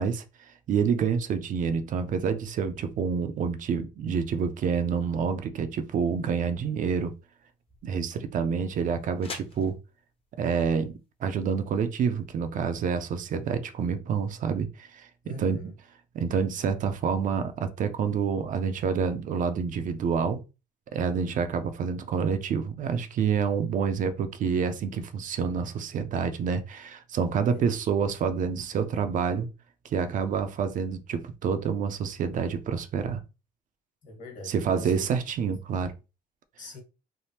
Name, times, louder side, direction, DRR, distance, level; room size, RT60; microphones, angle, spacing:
voice 1, 0.0-7.1 7.8-9.8 10.4-10.9 11.2-15.7 16.1-20.4 20.9-29.5 29.8-33.2 34.4-36.0, right 6 dB, 50° right, 0.5 m, -28 dB
sound 1, 6.5-12.5, left 4 dB, 35° left, 0.7 m, -49 dB
voice 2, 15.2-15.7 27.2-27.7 34.0-35.1 36.6-36.8, left 1 dB, 50° left, 1.3 m, -43 dB
3.3 x 2.0 x 2.8 m
cardioid pair, 110°, 17 cm